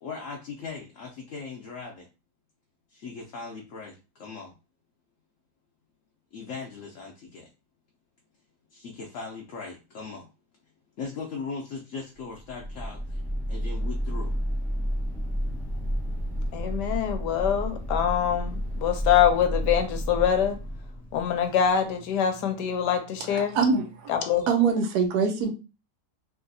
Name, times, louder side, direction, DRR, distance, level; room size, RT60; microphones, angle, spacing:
voice 1, 0.0-2.1 2.9-4.6 6.3-7.5 8.7-10.3 11.0-13.2 13.5-14.4, left 4 dB, 65° left, 0 dB, 0.8 m, -39 dB
sound 1, 12.3-21.6, equal, ahead, 0.5 m, -31 dB
voice 2, 16.5-20.6 21.1-23.6 24.1-24.5, left 9 dB, 90° left, 7 dB, 1.2 m, -24 dB
voice 3, 23.3-24.1 24.5-25.5, right 5 dB, 75° right, 6 dB, 1.1 m, -24 dB
3.2 x 2.7 x 2.6 m, 0.31 s
omnidirectional pair, 1.8 m